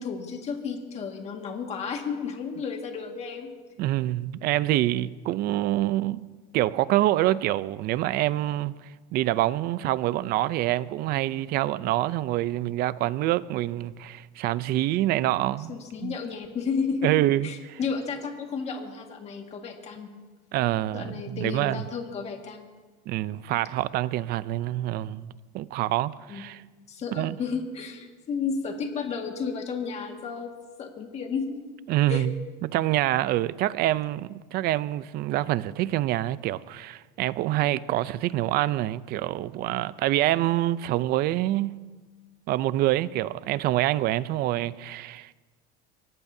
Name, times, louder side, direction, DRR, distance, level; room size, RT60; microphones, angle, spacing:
voice 1, 0.0-3.5 15.7-20.1 20.9-22.7 26.3-26.4 26.9-30.5 30.8-31.6 32.1-32.3, left 5 dB, 30° left, 1.8 m, -32 dB
voice 2, 3.8-6.3 6.5-8.7 9.1-16.2 17.0-17.5 20.5-21.8 23.1-25.3 25.5-26.6 27.1-27.4 31.9-41.8 42.5-45.3, right 15 dB, 50° right, 0.5 m, -26 dB
24.0 x 18.0 x 2.7 m
cardioid pair, 145°, 21 cm